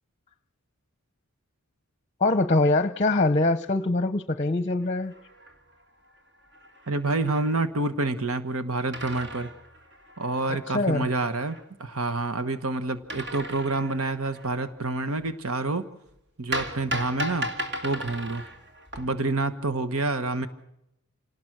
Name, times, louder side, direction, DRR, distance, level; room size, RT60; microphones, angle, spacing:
voice 1, 2.2-5.1 10.5-11.1, left 2 dB, 30° left, 12 dB, 0.7 m, -23 dB
sound 1, 4.8-5.8 6.2-6.3 6.4-7.6 8.9-11.6 13.1-14.6 16.5-19.4, right 1 dB, 50° right, 2.9 m, -37 dB
voice 2, 6.9-9.5 10.2-15.9 16.4-17.5 17.8-18.4 18.9-20.5, right 2 dB, 75° right, 11 dB, 1.3 m, -28 dB
28.0 x 18.5 x 6.1 m, 0.84 s
head